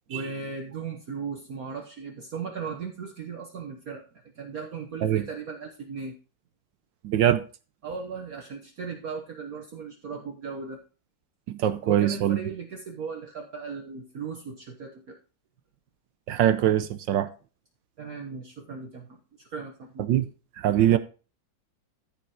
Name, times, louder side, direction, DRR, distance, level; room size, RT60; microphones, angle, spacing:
voice 1, 0.1-4.0 4.3-6.2 7.8-10.8 11.8-15.2 18.0-20.1, right 5 dB, 50° right, 1.6 m, -37 dB
voice 2, 7.0-7.4 11.5-12.4 16.3-17.3 20.1-20.3 20.6-21.0, right 11 dB, 75° right, 1.3 m, -22 dB
14.0 x 5.1 x 4.9 m
omnidirectional pair, 2.1 m